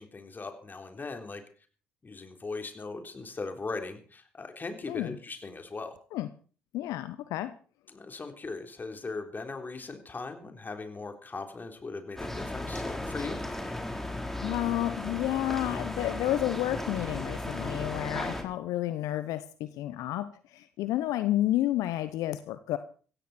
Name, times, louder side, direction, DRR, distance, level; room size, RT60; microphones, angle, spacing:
voice 1, 0.0-1.4 2.0-5.9 7.9-13.4, left 3 dB, 30° left, 5 dB, 3.7 m, -39 dB
voice 2, 6.7-7.5 14.4-22.8, left 14 dB, 70° left, 12 dB, 0.9 m, -30 dB
sound 1, 12.2-18.4, left 1 dB, 5° left, 4.0 m, -35 dB
16.5 x 16.0 x 4.4 m, 0.40 s
hypercardioid pair, 50°, 6 cm